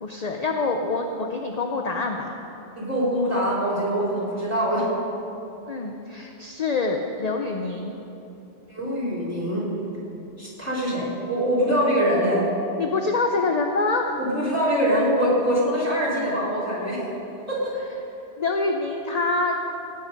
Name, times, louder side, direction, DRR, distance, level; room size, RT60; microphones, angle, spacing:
voice 1, 0.0-2.3 5.7-7.9 12.8-14.2 18.4-19.6, left 3 dB, 40° left, 3 dB, 0.7 m, -26 dB
voice 2, 2.8-4.9 8.7-9.7 10.4-12.5 14.2-17.0 17.5-17.7, equal, 15° right, -7 dB, 3.6 m, -23 dB
16.5 x 8.9 x 5.2 m, 2.9 s
omnidirectional pair, 1.1 m